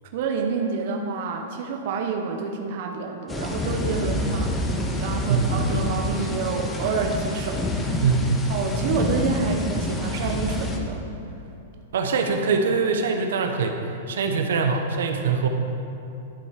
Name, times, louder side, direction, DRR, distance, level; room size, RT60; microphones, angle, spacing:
voice 1, 0.1-8.0 8.5-11.1, right 5 dB, 50° right, 2 dB, 0.8 m, -28 dB
sound 1, 3.3-10.8, left 1 dB, 10° left, 0.7 m, -27 dB
voice 2, 8.0-8.5 11.9-13.8 14.1-15.5, right 5 dB, 80° right, 4 dB, 0.9 m, -23 dB
11.5 x 5.6 x 4.9 m, 2.8 s
supercardioid pair, 160°, 0 cm